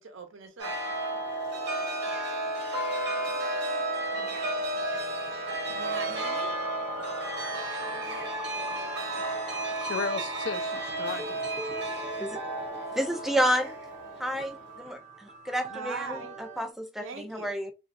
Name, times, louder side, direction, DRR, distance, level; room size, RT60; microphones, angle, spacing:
voice 1, 0.1-0.8 5.7-6.5 15.7-16.3 17.0-17.5, right 4 dB, 80° right, 0.8 m, -40 dB
Chime, 0.6-14.8, right 1 dB, 60° right, 1.0 m, -33 dB
sound 1, 4.3-16.7, right 3 dB, 35° right, 0.7 m, -44 dB
voice 2, 9.2-11.4, left 5 dB, 70° left, 0.5 m, -36 dB
voice 3, 12.9-13.7 14.2-17.7, equal, ahead, 0.3 m, -30 dB
3.0 x 2.5 x 2.5 m
head